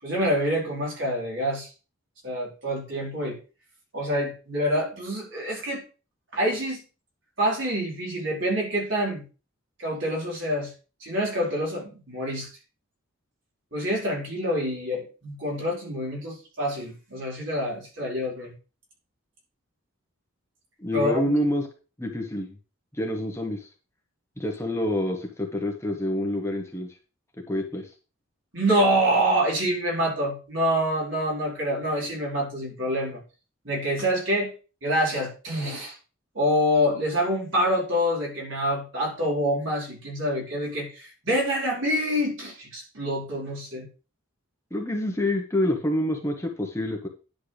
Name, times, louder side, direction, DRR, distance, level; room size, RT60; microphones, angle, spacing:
voice 1, 0.0-1.7 2.2-3.4 3.9-5.8 6.3-6.8 7.4-9.2 9.8-10.7 11.0-12.5 13.7-18.5 20.9-21.2 28.5-33.2 33.6-34.5 34.8-36.0 36.3-43.9, equal, 60° right, -3 dB, 4.5 m, -26 dB
voice 2, 20.8-21.6 22.0-22.6 22.9-23.7 24.4-26.9 27.5-27.9 44.7-47.1, left 1 dB, 15° left, 1 dB, 1.2 m, -27 dB
10.5 x 6.7 x 3.3 m, 0.33 s
head